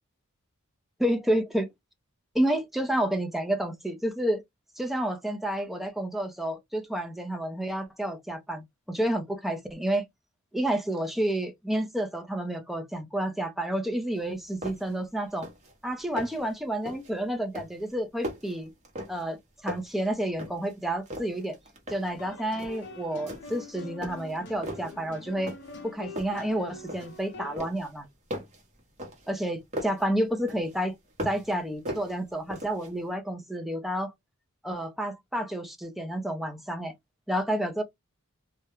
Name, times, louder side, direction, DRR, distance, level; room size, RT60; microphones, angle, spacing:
voice 1, 1.0-1.7 2.3-4.4 4.8-10.0 10.5-15.5 15.8-18.7 19.1-19.4 19.6-21.6 21.9-25.5 25.8-28.1 29.3-30.9 31.2-34.1 34.6-36.9 37.3-37.8, right 1 dB, ahead, 0.4 m, -30 dB
sound 1, 14.2-14.3 14.6-15.0 15.3-15.7 16.0-16.5 16.9-17.2 17.5-19.4 19.7-20.7 21.1-22.2 22.6-22.9 23.3-23.7 24.0-25.0 25.5-25.9 26.2-27.2 27.6-30.1 30.5-31.5 31.9-32.9, equal, 35° right, 0.9 m, -39 dB
sound 2, 22.1-27.6, left 3 dB, 55° left, 0.6 m, -44 dB
2.3 x 2.1 x 2.9 m
head